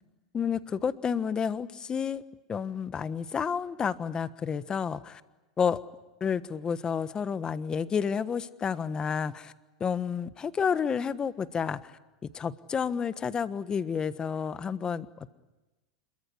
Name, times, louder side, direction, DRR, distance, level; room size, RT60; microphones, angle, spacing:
voice 1, 0.3-2.2 2.5-5.2 5.6-5.8 6.2-9.5 9.8-11.8 12.2-15.3, left 6 dB, 25° left, 14 dB, 1.3 m, -30 dB
27.0 x 23.0 x 9.6 m, 1.1 s
hypercardioid pair, 110°, 3 cm